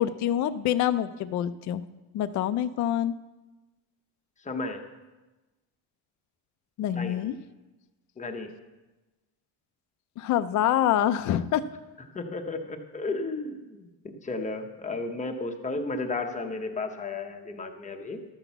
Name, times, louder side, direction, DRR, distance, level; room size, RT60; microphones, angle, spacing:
voice 1, 0.0-1.8 2.1-3.2 6.8-7.4 10.2-11.6, left 11 dB, 45° left, 11 dB, 0.4 m, -26 dB
voice 2, 4.4-4.9 6.9-7.3 8.2-8.5 12.1-18.2, left 3 dB, 15° left, 5 dB, 0.7 m, -33 dB
12.5 x 5.9 x 7.0 m, 1.1 s
cardioid pair, 165°, 44 cm